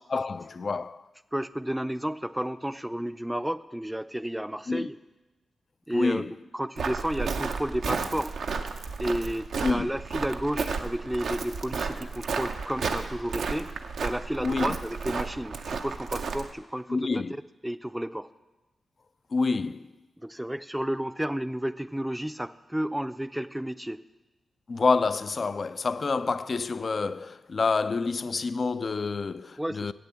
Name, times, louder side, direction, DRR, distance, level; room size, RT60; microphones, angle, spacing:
voice 1, 0.1-1.0 4.7-4.9 5.9-6.3 9.6-9.9 14.4-14.8 16.9-17.4 19.3-19.8 24.7-29.9, left 4 dB, 55° left, 0.4 m, -28 dB
voice 2, 1.3-5.0 5.9-8.3 9.0-13.7 14.0-17.2 17.6-18.3 20.2-24.0 29.6-29.9, right 1 dB, 10° right, 0.5 m, -32 dB
Walk footsteps, 6.8-16.5, right 5 dB, 75° right, 0.6 m, -32 dB
8.2 x 7.0 x 7.5 m
supercardioid pair, 40°, 0 cm